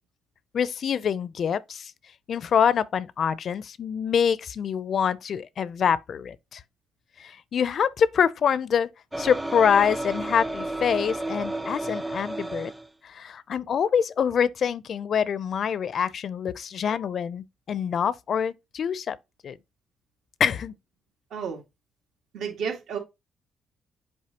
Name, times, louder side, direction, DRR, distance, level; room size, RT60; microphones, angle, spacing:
voice 1, 0.5-1.9 2.3-6.6 7.2-8.9 9.2-12.7 13.0-19.2 19.4-19.6 20.4-20.7, left 7 dB, 55° left, 0.4 m, -25 dB
sound 1, 9.1-12.9, right 2 dB, 10° right, 0.6 m, -32 dB
voice 2, 21.3-21.6 22.3-23.0, right 6 dB, 75° right, 2.1 m, -31 dB
7.5 x 4.4 x 2.9 m
cardioid pair, 90°, 0 cm